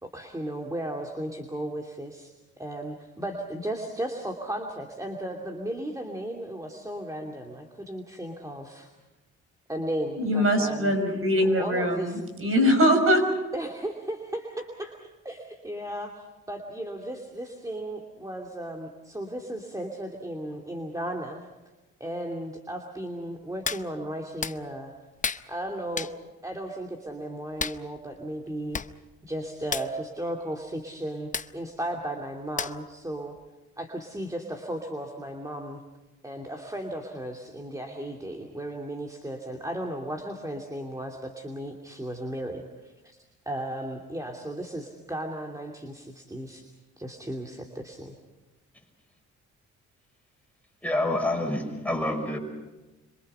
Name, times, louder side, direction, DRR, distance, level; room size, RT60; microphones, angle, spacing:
voice 1, 0.0-2.3 2.6-8.9 9.7-10.9 11.6-12.1 13.5-15.0 15.2-21.4 22.0-25.0 25.5-26.1 26.4-28.8 29.2-33.4 33.8-35.8 36.2-43.2 43.5-46.6 47.0-48.2, right 1 dB, 10° right, 1 dB, 2.7 m, -35 dB
voice 2, 10.2-13.3, equal, 45° right, 6 dB, 6.0 m, -22 dB
Hands, 23.6-23.9 24.4-24.6 25.2-25.4 26.0-26.1 27.6-27.8 28.5-28.6 28.7-28.9 29.2-29.4 29.7-29.9 31.3-31.5 32.6-32.9 33.4-33.5, left 5 dB, 25° left, 0.8 m, -31 dB
voice 3, 50.8-52.4, left 1 dB, 5° left, 2 dB, 5.6 m, -27 dB
27.5 x 25.0 x 5.7 m, 1.1 s
cardioid pair, 90°, 30 cm